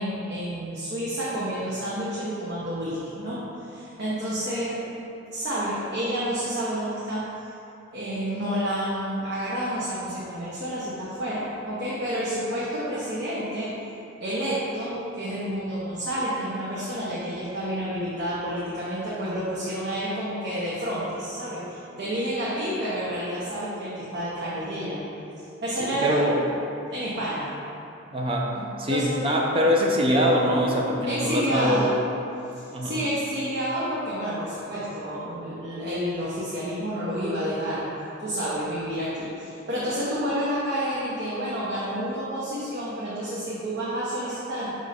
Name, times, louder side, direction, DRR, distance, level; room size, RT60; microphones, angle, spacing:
voice 1, 0.0-4.9 5.3-7.3 7.9-13.7 14.2-25.0 25.4-26.3 26.9-27.5 28.9-29.3 31.0-31.9 32.5-37.9 38.2-44.7, equal, 60° right, -9 dB, 1.0 m, -29 dB
voice 2, 25.8-26.4 28.1-28.5 28.8-32.0 32.7-33.0, equal, 30° right, -2 dB, 0.7 m, -23 dB
5.4 x 3.6 x 5.1 m, 2.7 s
head